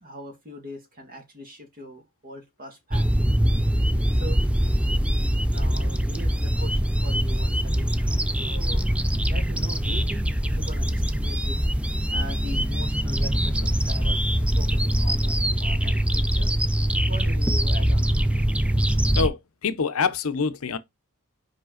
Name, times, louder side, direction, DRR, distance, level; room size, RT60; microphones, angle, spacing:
voice 1, 0.0-3.3 4.2-4.4 5.5-8.8 9.3-11.7 12.1-14.2 14.6-16.5 17.1-18.3, equal, 40° right, 1.9 m, -41 dB
sound 1, 2.9-19.3, equal, 5° right, 0.4 m, -23 dB
voice 2, 19.1-20.8, left 5 dB, 70° left, 0.7 m, -26 dB
5.2 x 4.9 x 3.8 m
head